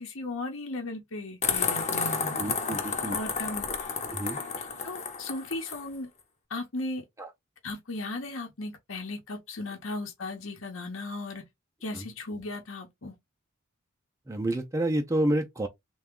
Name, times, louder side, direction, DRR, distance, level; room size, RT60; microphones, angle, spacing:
voice 1, 0.0-2.4 3.1-3.7 4.8-6.1 6.5-7.0 7.6-11.4 11.8-13.2, left 2 dB, 65° left, 0.9 m, -36 dB
sound 1, 1.4-5.8, left 5 dB, 35° left, 0.8 m, -31 dB
voice 2, 2.4-3.2 4.1-4.4 7.2-7.3 11.9-12.0 14.3-15.7, right 1 dB, 15° right, 0.5 m, -29 dB
3.4 x 2.3 x 3.6 m
head